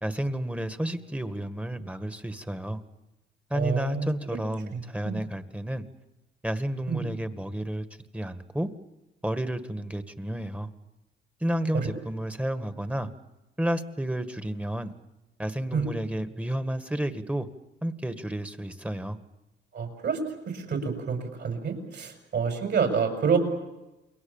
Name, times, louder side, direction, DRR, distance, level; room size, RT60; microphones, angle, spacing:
voice 1, 0.0-2.8 3.5-5.8 6.4-7.9 8.1-8.7 9.2-10.7 11.4-13.1 13.6-14.9 15.4-17.5 17.8-19.2, right 1 dB, 5° right, 10 dB, 1.7 m, -31 dB
voice 2, 3.5-4.1 4.7-5.2 6.9-7.0 11.7-11.9 15.7-15.9 19.7-20.2 20.5-23.4, right 6 dB, 60° right, 5 dB, 6.5 m, -28 dB
29.0 x 22.0 x 7.2 m, 1.0 s
cardioid pair, 90°, 20 cm